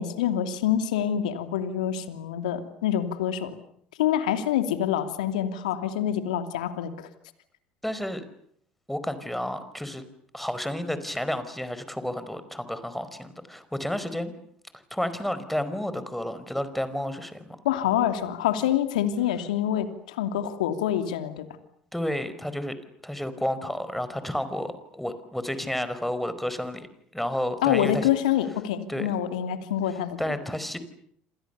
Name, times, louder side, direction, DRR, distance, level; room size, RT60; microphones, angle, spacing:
voice 1, 0.0-3.5 4.0-7.1 17.6-21.5 27.6-30.2, left 10 dB, 75° left, 8 dB, 2.8 m, -26 dB
voice 2, 7.8-8.2 8.9-10.0 10.3-14.3 14.9-17.6 21.9-22.7 23.0-26.9 27.1-28.1 28.9-29.1 30.2-30.8, left 1 dB, 5° left, 12 dB, 4.8 m, -31 dB
28.0 x 27.5 x 7.0 m, 0.66 s
hypercardioid pair, 65°, 4 cm